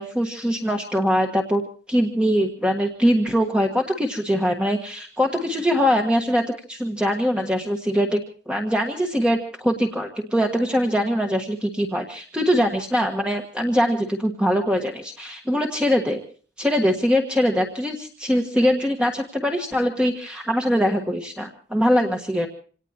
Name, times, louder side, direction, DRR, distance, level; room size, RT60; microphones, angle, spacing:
voice 1, 0.0-1.6 1.9-8.2 8.5-16.2 16.6-22.5, equal, 5° right, 2 dB, 1.5 m, -22 dB
27.5 x 18.5 x 2.9 m, 0.43 s
head